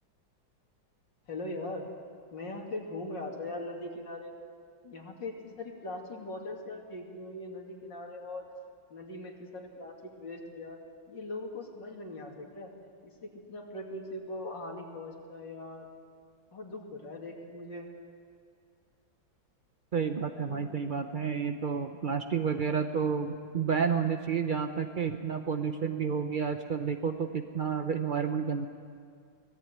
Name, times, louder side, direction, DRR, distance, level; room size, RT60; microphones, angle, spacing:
voice 1, 1.3-1.9 2.3-4.3 4.8-8.5 8.9-10.8 11.1-12.7 13.0-15.9 16.5-17.9 20.5-20.7, left 2 dB, 65° left, 0 dB, 3.4 m, -40 dB
voice 2, 19.9-28.7, right 6 dB, 60° right, 6 dB, 0.5 m, -30 dB
24.0 x 18.0 x 9.3 m, 2.2 s
omnidirectional pair, 2.1 m